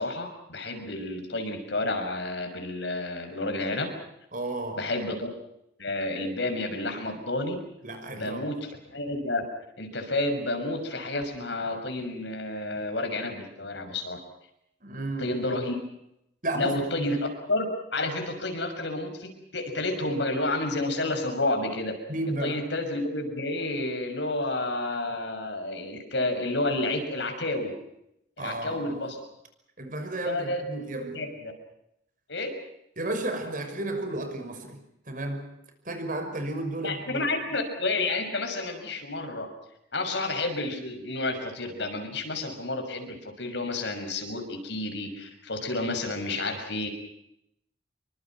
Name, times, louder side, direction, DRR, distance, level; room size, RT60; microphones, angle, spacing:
voice 1, 0.0-3.9 4.8-5.3 5.8-7.5 8.1-9.4 9.8-14.2 15.2-15.7 16.5-21.9 22.4-27.7 28.4-29.2 30.2-30.6 31.1-31.5 32.3-32.5 36.8-39.5 39.9-46.9, left 2 dB, 65° left, 5 dB, 6.4 m, -30 dB
voice 2, 4.3-4.9 7.8-8.5 14.8-15.6 16.4-17.1 22.1-22.6 28.4-29.0 29.8-31.2 33.0-34.8 35.1-35.5 35.8-37.2, right 2 dB, 45° right, 6 dB, 5.8 m, -33 dB
28.0 x 24.5 x 6.1 m, 0.80 s
head